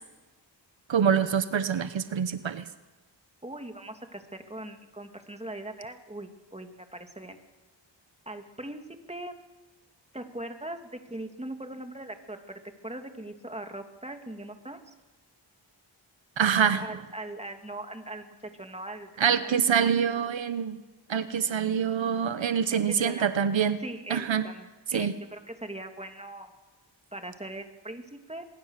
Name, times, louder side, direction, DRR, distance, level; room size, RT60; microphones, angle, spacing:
voice 1, 0.9-2.6 16.4-16.8 19.2-20.8 21.1-23.8 24.1-24.4 24.9-25.1, right 7 dB, 85° right, 12 dB, 1.0 m, -25 dB
voice 2, 3.4-7.4 8.3-8.8 9.1-9.3 10.1-14.9 16.8-19.6 19.8-19.9 22.7-23.3 23.8-26.5 27.1-28.5, right 1 dB, 15° right, 5 dB, 2.8 m, -40 dB
25.0 x 22.0 x 6.7 m, 1.2 s
cardioid pair, 50°, 45 cm